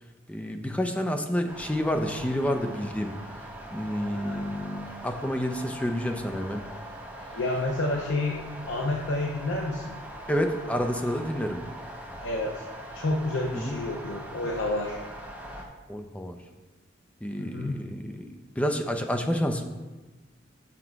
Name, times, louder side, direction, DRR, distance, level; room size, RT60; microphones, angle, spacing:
voice 1, 0.3-3.1 3.7-6.6 10.3-11.6 13.5-13.8 15.9-16.4 17.2-19.6, equal, 5° left, 5 dB, 0.5 m, -29 dB
sound 1, 1.5-15.6, right 1 dB, 10° right, 1.0 m, -42 dB
voice 2, 4.1-4.4 7.3-10.0 12.2-12.7 12.9-15.0 17.4-17.8, left 2 dB, 75° left, -1 dB, 0.8 m, -30 dB
6.2 x 6.0 x 4.6 m, 1.2 s
head